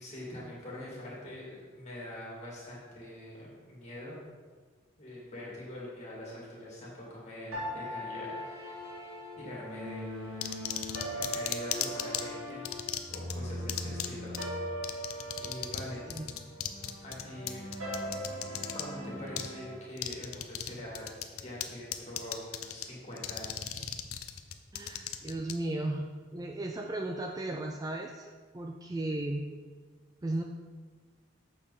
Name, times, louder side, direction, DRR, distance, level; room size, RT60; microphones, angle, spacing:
voice 1, 0.0-4.3 5.0-8.8 9.4-10.4 11.1-14.4 15.4-16.1 17.0-17.7 18.7-23.9, left 1 dB, 30° left, -5 dB, 2.8 m, -44 dB
sound 1, 7.5-19.7, equal, 85° right, 2.8 m, -40 dB
sound 2, 10.4-12.2 12.6-13.3 13.7-14.1 14.3-14.4 14.8-18.8 19.4-19.5 20.0-20.7 20.9-21.6 21.9-22.8 23.2-25.5, left 11 dB, 85° left, 0.6 m, -35 dB
voice 2, 24.7-29.5 30.2-30.4, right 1 dB, 15° right, 2 dB, 0.4 m, -35 dB
8.8 x 6.7 x 4.2 m, 1.5 s
head